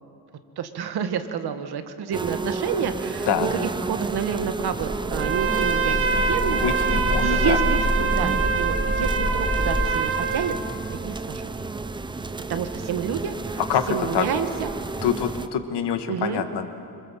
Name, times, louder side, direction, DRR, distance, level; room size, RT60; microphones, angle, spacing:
voice 1, 0.6-6.6 7.2-10.5 10.9-11.5 12.5-13.6 13.9-14.7 16.1-16.4, right 8 dB, 70° right, 8 dB, 1.7 m, -29 dB
sound 1, 2.1-15.5, right 3 dB, 10° right, 0.5 m, -32 dB
sound 2, 4.4-9.9, left 2 dB, 5° left, 2.9 m, -27 dB
Trumpet, 5.1-10.6, right 6 dB, 30° right, 1.5 m, -25 dB
voice 2, 6.4-7.6 13.7-13.8 14.1-14.3 15.0-16.7, left 8 dB, 85° left, 7 dB, 2.0 m, -25 dB
27.0 x 25.5 x 7.6 m, 2.6 s
cardioid pair, 170°, 40 cm